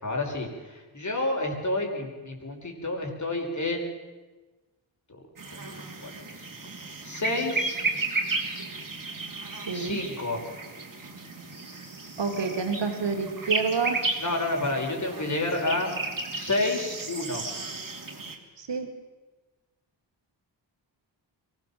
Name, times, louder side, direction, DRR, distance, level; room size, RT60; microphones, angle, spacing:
voice 1, 0.0-3.9 5.1-5.2 5.7-5.8 6.0-6.5 7.0-7.8 9.7-10.4 14.2-15.9 16.3-17.4, left 2 dB, 40° left, 1 dB, 5.5 m, -30 dB
sound 1, 5.4-18.4, right 3 dB, 45° right, 3.2 m, -34 dB
voice 2, 9.7-10.0 12.2-14.0 18.6-18.9, right 5 dB, 65° right, 5 dB, 3.3 m, -28 dB
23.5 x 17.0 x 7.4 m, 1.2 s
cardioid pair, 70°, 45 cm